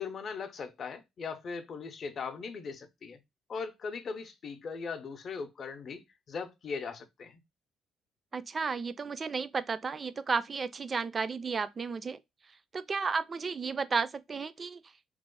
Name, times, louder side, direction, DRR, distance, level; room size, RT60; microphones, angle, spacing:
voice 1, 0.0-3.2 3.5-7.4, left 5 dB, 50° left, 0.6 m, -39 dB
voice 2, 8.3-12.2 12.7-14.8, right 5 dB, 35° right, 0.3 m, -33 dB
3.0 x 2.0 x 3.7 m
cardioid pair, 100°, 0 cm